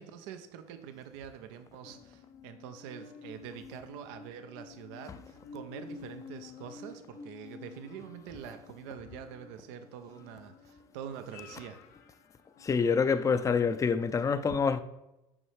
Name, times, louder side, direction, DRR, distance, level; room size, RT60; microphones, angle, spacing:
voice 1, 0.0-11.8, right 8 dB, 85° right, 0.5 m, -45 dB
sound 1, 1.8-13.3 13.7-13.8, left 5 dB, 70° left, 0.7 m, -51 dB
voice 2, 12.6-14.8, left 5 dB, 20° left, 0.4 m, -26 dB
7.1 x 5.4 x 3.3 m
supercardioid pair, 75°, 14 cm